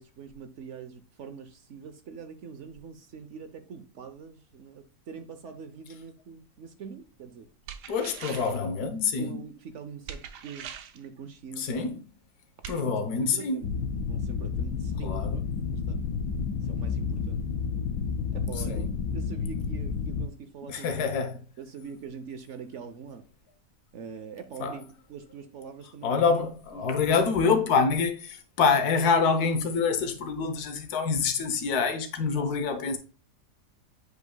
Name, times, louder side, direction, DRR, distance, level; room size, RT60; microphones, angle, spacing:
voice 1, 0.0-7.5 9.2-11.9 12.8-13.7 14.1-15.3 15.7-16.0 16.6-17.5 18.3-20.9 21.6-23.2 23.9-26.1 26.7-27.0 27.8-27.9 32.4-32.8, right 6 dB, 60° right, 0.8 m, -44 dB
sound 1, 7.7-8.6 10.1-11.1 12.6-12.8, right 8 dB, 80° right, 1.4 m, -41 dB
voice 2, 7.9-9.4 11.6-12.0 12.7-13.6 15.0-15.4 18.7-18.9 20.7-21.4 24.6-24.8 26.0-33.0, left 5 dB, 70° left, 1.5 m, -26 dB
sound 2, 13.6-20.3, left 5 dB, 85° left, 1.3 m, -30 dB
8.2 x 5.1 x 2.2 m
omnidirectional pair, 1.8 m